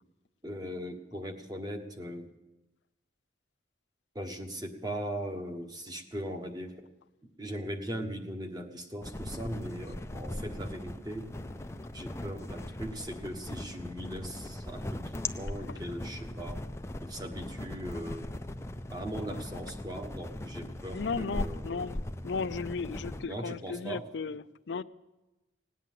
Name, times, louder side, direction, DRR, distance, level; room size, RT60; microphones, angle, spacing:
voice 1, 0.4-2.3 4.1-6.8 7.4-11.3 11.9-16.6 17.0-18.3 18.9-21.9 23.3-24.0, equal, 20° right, 4 dB, 1.3 m, -39 dB
sound 1, 9.0-23.3, left 1 dB, 15° left, 0.4 m, -39 dB
voice 2, 20.6-24.8, left 5 dB, 65° left, 14 dB, 0.5 m, -36 dB
18.0 x 9.3 x 7.6 m, 1.1 s
head